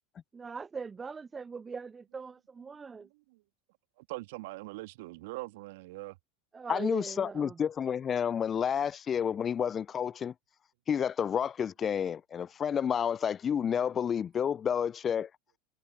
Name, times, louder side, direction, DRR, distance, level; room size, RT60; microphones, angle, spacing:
voice 1, 0.3-3.1 6.5-7.6, right 5 dB, 20° right, 0.3 m, -41 dB
voice 2, 4.0-6.2, right 22 dB, 65° right, 2.1 m, -42 dB
voice 3, 6.7-10.3 10.9-15.3, left 8 dB, 30° left, 0.6 m, -30 dB
figure-of-eight pair, 80°, 0 cm